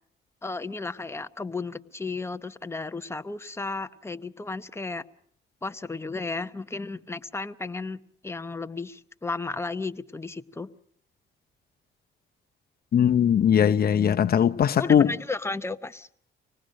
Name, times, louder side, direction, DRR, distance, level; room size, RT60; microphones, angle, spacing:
voice 1, 0.4-5.0 5.6-10.7 14.8-16.1, left 3 dB, 15° left, 0.9 m, -34 dB
voice 2, 12.9-15.1, left 8 dB, 50° left, 0.9 m, -20 dB
24.5 x 19.0 x 6.4 m
cardioid pair, 90°, 20 cm